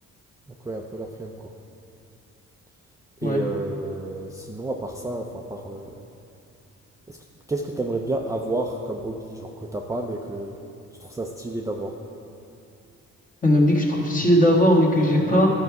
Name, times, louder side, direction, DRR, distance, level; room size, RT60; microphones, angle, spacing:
voice 1, 0.6-1.6 3.2-5.9 7.1-7.2 7.5-10.6 11.0-11.9 15.2-15.4, right 2 dB, 10° right, 0 dB, 0.5 m, -30 dB
voice 2, 13.4-15.5, equal, 25° left, -2 dB, 1.5 m, -18 dB
11.0 x 4.8 x 4.7 m, 2.6 s
cardioid pair, 90°, 30 cm